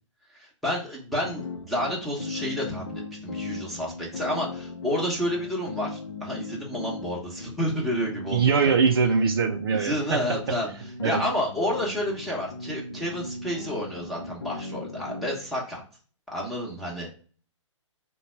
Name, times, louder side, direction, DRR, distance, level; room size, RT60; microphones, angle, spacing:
voice 1, 0.4-8.7 9.7-10.7 11.0-15.8 16.3-17.1, equal, ahead, 1.0 m, -30 dB
sound 1, 1.2-15.4, left 3 dB, 55° left, 0.7 m, -38 dB
voice 2, 8.3-10.6 11.0-11.2, right 5 dB, 45° right, 0.4 m, -23 dB
3.8 x 2.3 x 4.4 m
figure-of-eight pair, 125°, 16 cm